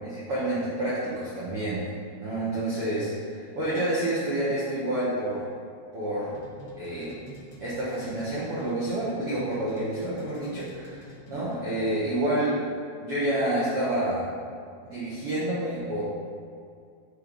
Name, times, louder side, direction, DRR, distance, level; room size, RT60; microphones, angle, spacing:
voice 1, 0.0-1.8 2.2-5.4 5.9-6.4 6.8-7.1 7.6-12.6 13.0-14.3 14.8-16.0, right 1 dB, 85° right, -10 dB, 1.3 m, -28 dB
sound 1, 6.3-11.9, left 1 dB, 85° left, 1.6 m, -48 dB
9.2 x 3.2 x 5.2 m, 2.3 s
omnidirectional pair, 4.9 m